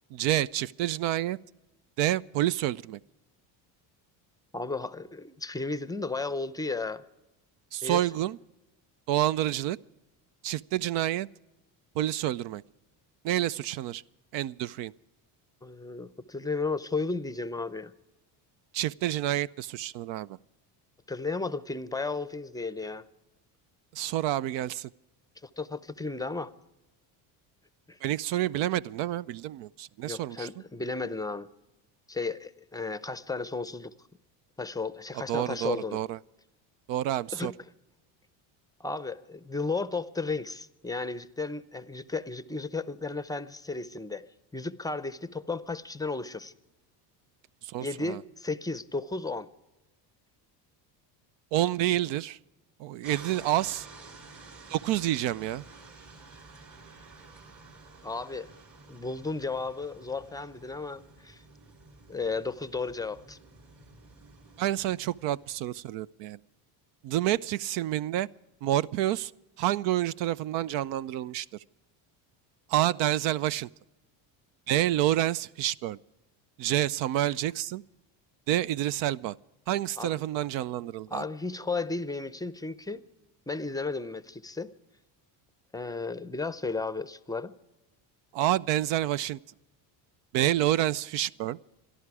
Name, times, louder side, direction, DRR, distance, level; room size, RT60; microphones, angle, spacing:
voice 1, 0.1-1.4 2.0-3.0 7.7-8.4 9.1-9.8 10.4-11.3 12.0-12.6 13.2-14.0 14.3-14.9 18.7-20.4 23.9-24.9 28.0-30.5 35.3-36.2 36.9-37.5 47.6-48.2 51.5-52.4 52.8-53.9 54.7-55.6 64.6-66.4 67.0-68.3 68.6-69.3 69.6-71.5 72.7-73.7 74.7-76.0 76.6-77.8 78.5-79.3 79.7-81.2 88.3-89.4 90.3-91.6, right 13 dB, 70° right, 0.5 m, -28 dB
voice 2, 4.5-7.0 7.8-8.0 15.6-17.9 21.1-23.0 25.4-26.5 27.9-28.0 30.1-31.5 32.1-33.9 34.6-36.0 37.3-37.5 38.8-44.2 44.5-46.5 47.8-49.5 58.0-58.5 58.9-61.4 62.1-63.4 80.0-80.1 81.1-83.0 83.5-84.7 85.7-87.5, left 3 dB, 10° left, 0.6 m, -34 dB
sound 1, 53.0-65.9, right 3 dB, 40° right, 3.3 m, -51 dB
26.5 x 11.5 x 4.8 m
cardioid pair, 110°, 45 cm